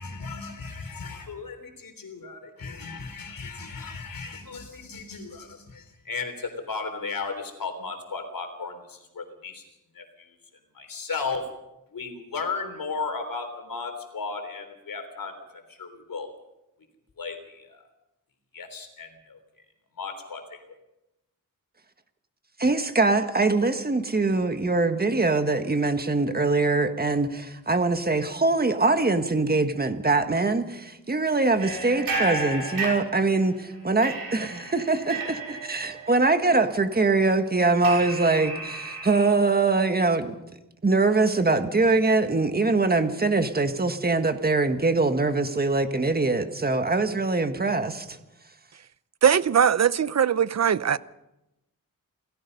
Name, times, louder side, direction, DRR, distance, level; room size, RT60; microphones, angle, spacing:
voice 1, 0.0-9.6 9.9-10.3 10.7-11.4 11.9-15.3 15.7-16.3 17.2-17.8 18.5-19.4 20.0-20.8, left 4 dB, 75° left, 3.7 m, -35 dB
voice 2, 22.6-33.5 33.8-40.3 40.8-48.2, right 3 dB, 25° right, 1.6 m, -23 dB
sound 1, 31.6-33.6 34.0-39.3, right 3 dB, 85° right, 6.3 m, -33 dB
voice 3, 49.2-51.0, right 8 dB, 50° right, 0.7 m, -20 dB
28.5 x 18.0 x 5.5 m
wide cardioid pair, 150°, 34 cm